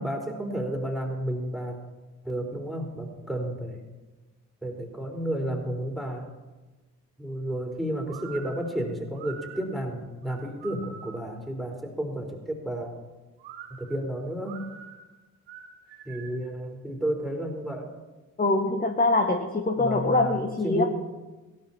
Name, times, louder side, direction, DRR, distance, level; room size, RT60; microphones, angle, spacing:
voice 1, 0.0-1.8 2.2-3.8 4.6-6.3 7.2-12.9 13.8-14.7 16.0-17.9 19.8-20.9, right 1 dB, ahead, 1 dB, 4.3 m, -32 dB
sound 1, 8.1-11.4 13.4-16.5, right 8 dB, 80° right, 1.6 m, -45 dB
voice 2, 18.4-20.8, left 2 dB, 20° left, 5 dB, 1.4 m, -24 dB
17.0 x 12.5 x 4.4 m, 1.2 s
hypercardioid pair, 45°, 44 cm